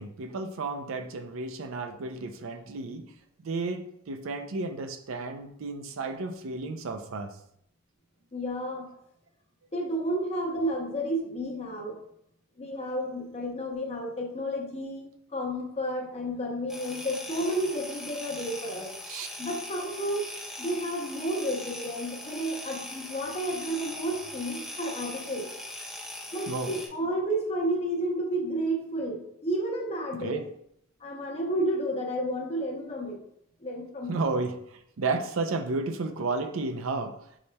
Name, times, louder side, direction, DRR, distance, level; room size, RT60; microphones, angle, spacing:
voice 1, 0.0-3.1 3.4-7.4 19.0-19.3 26.5-26.7 30.2-30.5 34.1-37.2, right 3 dB, 75° right, 7 dB, 0.5 m, -32 dB
voice 2, 8.3-8.9 9.7-12.0 12.6-18.9 19.4-20.3 20.6-25.5 26.3-30.4 31.0-33.2 33.6-34.2, right 1 dB, 30° left, 0 dB, 0.8 m, -31 dB
sound 1, 16.7-26.9, left 1 dB, 5° right, 0.5 m, -40 dB
4.9 x 4.1 x 2.2 m, 0.74 s
head